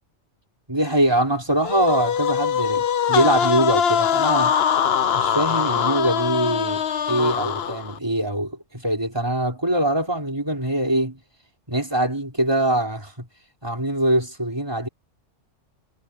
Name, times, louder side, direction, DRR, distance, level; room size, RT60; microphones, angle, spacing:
voice 1, 0.7-4.5 5.1-11.2 11.7-13.3 13.6-14.9, right 1 dB, 20° right, 4.5 m, -23 dB
sound 1, 1.6-8.0, left 8 dB, 60° left, 1.0 m, -22 dB
omnidirectional pair, 1.2 m